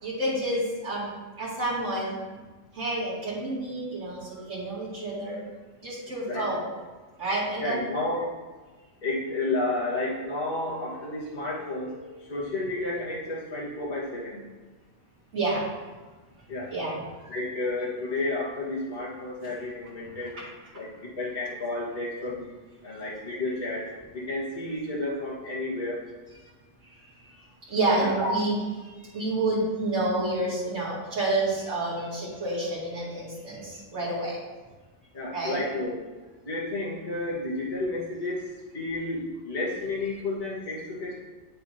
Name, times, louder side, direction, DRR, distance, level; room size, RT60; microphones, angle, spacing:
voice 1, 0.0-1.1 1.4-2.2 2.7-5.4 5.8-6.6 7.2-7.8 15.3-15.6 16.7-17.3 20.3-20.4 27.3-27.4 27.7-34.4 35.3-35.6, right 2 dB, 65° right, -11 dB, 2.9 m, -29 dB
voice 2, 6.3-6.6 7.6-8.3 9.0-14.4 16.5-16.7 17.3-20.3 20.7-20.9 21.2-22.5 22.8-23.9 24.1-26.0 27.9-28.3 35.1-36.0 36.4-38.5 38.7-41.2, left 2 dB, 35° left, -8 dB, 1.8 m, -31 dB
8.4 x 6.7 x 2.8 m, 1.3 s
omnidirectional pair, 1.4 m